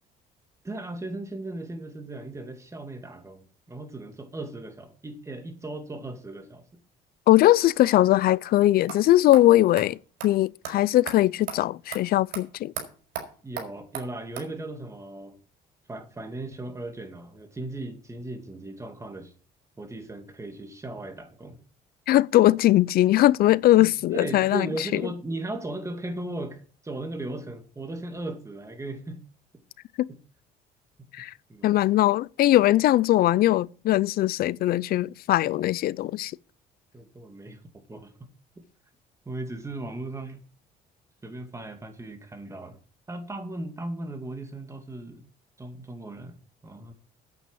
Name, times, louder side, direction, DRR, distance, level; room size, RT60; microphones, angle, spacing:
voice 1, 0.6-6.6 13.4-15.4 15.9-19.3 19.8-21.6 23.8-29.2 30.1-30.2 31.0-31.1 31.5-31.7 36.9-38.3 39.3-40.4 41.2-42.8 43.1-45.3 45.6-46.4 46.6-46.9, right 2 dB, 15° right, 2.4 m, -37 dB
voice 2, 7.3-10.0 10.2-12.7 22.1-25.0 30.0-30.1 31.1-31.3 31.6-36.3, left 15 dB, 65° left, 0.5 m, -20 dB
sound 1, 8.9-9.0 9.3-9.4 9.8-9.9 10.2-10.3 10.6-10.7 11.1-11.2 11.5-11.6 11.9-12.0 12.3-12.4 12.8-12.9 13.1-13.3 13.6-13.7 13.9-14.1 14.4-14.5, right 8 dB, 85° right, 4.3 m, -34 dB
9.2 x 8.4 x 6.2 m
cardioid pair, 110°, 17 cm